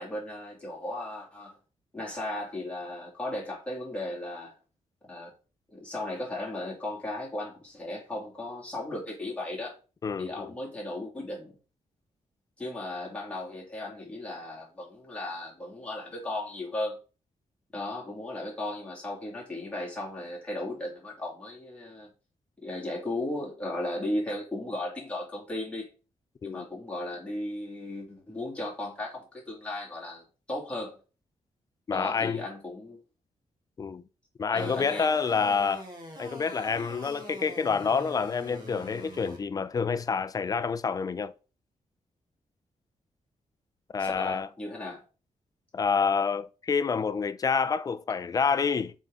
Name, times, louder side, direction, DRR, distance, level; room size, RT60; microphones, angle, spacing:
voice 1, 0.0-1.6 1.9-4.5 5.0-5.3 5.7-9.7 10.2-11.6 12.6-17.0 17.7-22.1 22.6-25.9 26.4-31.0 31.9-33.0 34.5-35.1 44.0-45.0, left 1 dB, 10° left, 2.4 m, -36 dB
voice 2, 10.0-10.5 26.4-26.7 31.9-32.4 33.8-34.0 34.4-35.9 36.2-41.3 43.9-44.5 45.7-48.9, left 5 dB, 30° left, 0.4 m, -28 dB
sound 1, 34.6-39.4, right 1 dB, 35° right, 1.6 m, -44 dB
7.4 x 3.6 x 3.9 m
wide cardioid pair, 180°, 13 cm